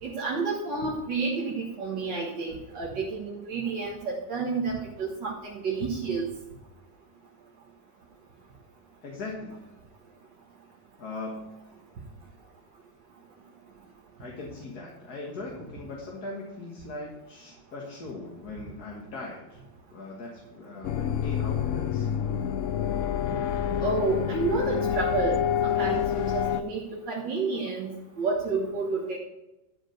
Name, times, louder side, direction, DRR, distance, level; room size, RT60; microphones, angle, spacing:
voice 1, 0.0-6.3 23.8-25.4 25.6-26.8 27.1-29.2, right 4 dB, 65° right, -6 dB, 2.3 m, -30 dB
voice 2, 9.0-9.6 11.0-11.5 14.2-19.6 19.9-22.1, left 2 dB, 55° left, -1 dB, 2.1 m, -39 dB
sound 1, 20.8-26.6, left 9 dB, 80° left, 0.7 m, -27 dB
12.5 x 5.1 x 6.6 m, 0.98 s
omnidirectional pair, 2.1 m